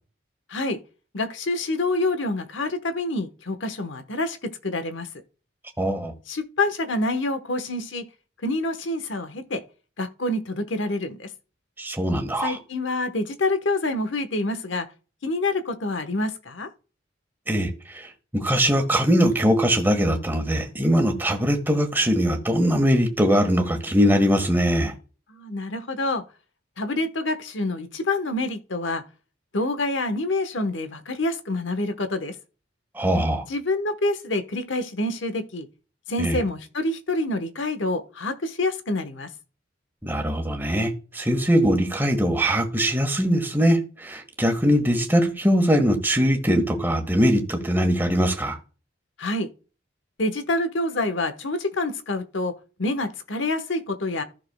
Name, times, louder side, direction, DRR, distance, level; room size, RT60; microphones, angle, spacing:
voice 1, 1.1-5.1 6.3-8.0 8.4-9.6 10.0-11.3 12.4-14.9 15.2-16.7 25.3-26.2 26.8-29.0 29.5-32.3 33.5-35.7 36.1-39.3 49.2-49.5 50.2-52.5 52.8-54.2, left 2 dB, 70° left, 1.1 m, -27 dB
voice 2, 5.8-6.1 11.8-12.6 17.5-18.1 18.3-24.9 33.0-33.4 36.2-36.4 40.0-48.6, equal, 10° right, 1.5 m, -21 dB
15.0 x 6.3 x 2.2 m
head